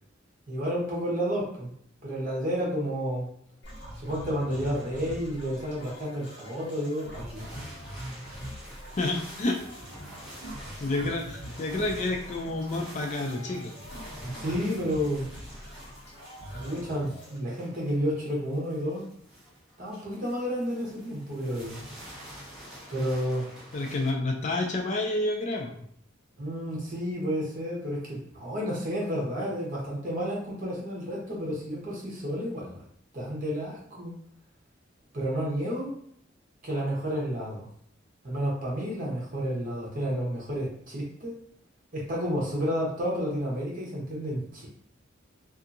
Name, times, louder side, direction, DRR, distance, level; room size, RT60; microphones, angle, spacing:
voice 1, 0.5-1.7 2.0-3.3 4.0-7.4 14.2-15.3 16.6-19.1 19.8-21.8 22.9-23.5 26.4-32.8 33.1-34.1 35.1-35.9 36.6-37.7 38.2-41.4 41.9-44.7, equal, 45° right, -4 dB, 1.0 m, -31 dB
sound 1, 3.6-17.4, equal, 60° left, 1.0 m, -43 dB
sound 2, 7.3-24.1, equal, ahead, 1.0 m, -48 dB
voice 2, 9.0-9.6 10.8-13.8 23.7-25.8, left 2 dB, 35° left, 2 dB, 0.4 m, -29 dB
2.6 x 2.4 x 2.5 m, 0.68 s
head